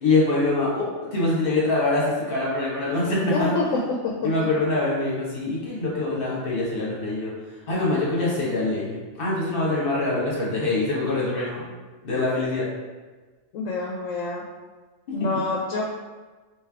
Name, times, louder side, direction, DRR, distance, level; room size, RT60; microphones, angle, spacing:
voice 1, 0.0-3.5 4.2-7.3 7.7-11.7 12.0-12.7 15.1-15.2, left 2 dB, 50° left, -6 dB, 1.3 m, -24 dB
voice 2, 3.3-4.3 13.5-14.4 15.1-15.8, left 3 dB, 90° left, -1 dB, 1.0 m, -27 dB
3.3 x 3.0 x 3.5 m, 1.3 s
omnidirectional pair, 1.3 m